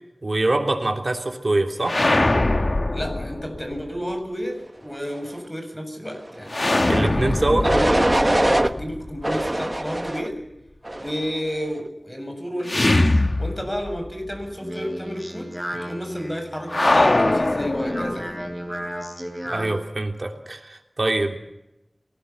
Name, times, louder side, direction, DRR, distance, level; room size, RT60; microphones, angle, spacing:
voice 1, 0.2-2.0 6.9-7.7 19.4-21.4, right 2 dB, 65° right, 4 dB, 3.3 m, -24 dB
sound 1, 1.8-3.8 6.5-9.5 12.6-14.1 14.3-14.4 16.7-18.5, left 2 dB, 60° left, 1.7 m, -22 dB
voice 2, 2.9-6.6 7.3-10.4 11.0-18.4, equal, 15° left, 5 dB, 7.2 m, -31 dB
sound 2, 6.7-7.1 7.6-8.7 9.2-10.3 10.8-11.3, right 1 dB, 30° right, 1.2 m, -22 dB
Speech, 14.4-19.8, equal, 5° right, 7.7 m, -33 dB
25.0 x 19.5 x 7.0 m, 0.90 s
wide cardioid pair, 45°, 0 cm